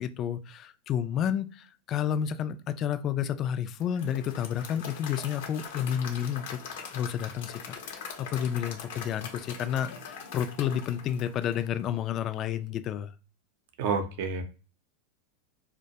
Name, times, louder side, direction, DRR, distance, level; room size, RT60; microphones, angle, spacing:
voice 1, 0.0-6.6 6.9-13.1, left 9 dB, 40° left, 10 dB, 0.3 m, -31 dB
Applause / Crowd, 3.8-12.0, left 6 dB, 70° left, 0.6 m, -42 dB
voice 2, 13.8-14.4, right 5 dB, 65° right, 7 dB, 0.6 m, -29 dB
2.2 x 2.1 x 2.7 m, 0.35 s
hypercardioid pair, 115°, 0 cm